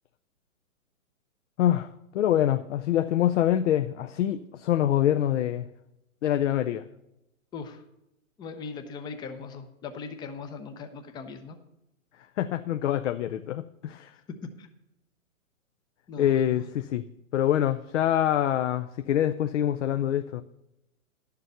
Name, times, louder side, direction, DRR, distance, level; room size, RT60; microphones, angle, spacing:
voice 1, 1.6-1.9 2.1-5.7 6.2-6.9 12.4-14.1 16.2-17.0 17.3-20.4, left 11 dB, 60° left, 0.6 m, -25 dB
voice 2, 7.5-7.8 8.4-11.6 14.6-14.7 16.1-16.7, left 5 dB, 10° left, 0.6 m, -39 dB
11.0 x 6.8 x 6.7 m
hypercardioid pair, 130°, 41 cm